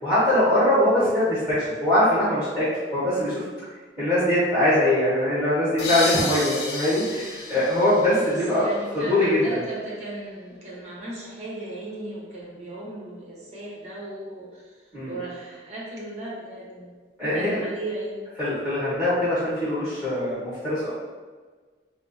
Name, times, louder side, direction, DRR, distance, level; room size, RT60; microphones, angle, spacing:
voice 1, 0.0-3.4 4.0-8.6 8.9-9.4 14.9-15.1 17.2-17.6 18.4-20.9, left 1 dB, 5° right, -11 dB, 1.4 m, -22 dB
sound 1, 5.8-9.3, left 3 dB, 80° left, 0.7 m, -32 dB
voice 2, 8.2-14.8 15.0-16.9 17.3-18.3, right 1 dB, 40° right, -5 dB, 1.1 m, -36 dB
4.3 x 2.0 x 4.1 m, 1.4 s
head